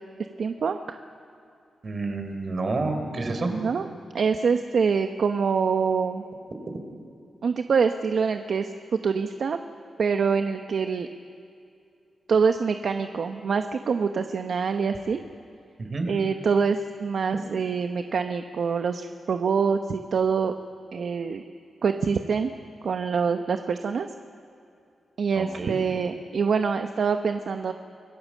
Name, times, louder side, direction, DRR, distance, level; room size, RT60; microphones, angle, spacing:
voice 1, 0.4-1.0 3.5-3.9 4.1-6.2 7.4-8.7 9.0-9.6 10.0-11.1 12.3-15.2 16.0-20.5 20.9-21.4 21.8-22.5 22.8-24.1 25.2-27.7, right 5 dB, 70° right, 7 dB, 0.9 m, -25 dB
voice 2, 1.8-3.5 15.8-16.1 25.4-25.8, right 3 dB, 50° right, 6 dB, 3.8 m, -29 dB
26.0 x 17.5 x 7.5 m, 2.6 s
cardioid pair, 75°, 0 cm